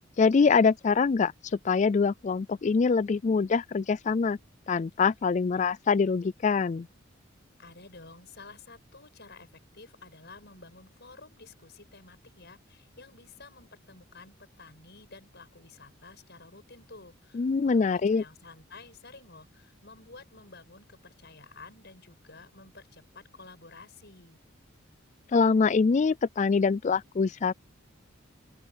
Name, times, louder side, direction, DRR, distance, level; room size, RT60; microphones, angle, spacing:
voice 1, 0.2-1.3 1.6-4.4 4.7-6.9 17.3-18.2 25.3-27.5, left 5 dB, 35° left, 0.3 m, -24 dB
voice 2, 7.6-24.4, left 3 dB, 55° left, 7.1 m, -51 dB
open air
head